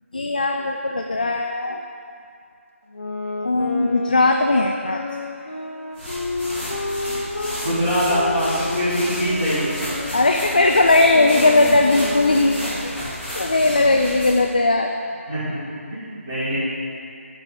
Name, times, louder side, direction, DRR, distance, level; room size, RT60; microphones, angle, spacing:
voice 1, 0.1-1.8 3.4-5.0 10.1-13.0 13.4-14.9, left 2 dB, 35° left, 3 dB, 0.3 m, -18 dB
sound 1, 2.9-7.6 8.0-13.0, left 2 dB, 65° left, 1.3 m, -30 dB
sound 2, 5.9-14.5, equal, ahead, 1.0 m, -32 dB
voice 2, 7.6-9.8 15.3-15.6 15.9-16.6, equal, 20° right, -13 dB, 2.1 m, -23 dB
6.5 x 6.2 x 5.5 m, 2.4 s
figure-of-eight pair, 180°, 8 cm